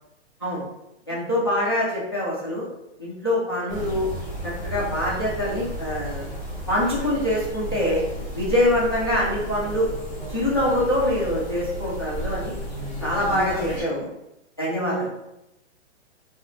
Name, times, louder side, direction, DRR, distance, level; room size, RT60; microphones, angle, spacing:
voice 1, 1.1-2.7 3.0-4.1 4.4-6.2 6.7-8.0 8.3-9.9 10.3-12.6 13.0-14.1 14.6-15.1, left 1 dB, 25° left, -7 dB, 0.3 m, -24 dB
sound 1, 3.7-13.8, right 1 dB, 5° left, 1.3 m, -33 dB
voice 2, 13.3-13.9 14.9-15.1, right 4 dB, 60° right, -3 dB, 0.7 m, -34 dB
3.3 x 2.3 x 3.0 m, 0.86 s
hypercardioid pair, 170°, 36 cm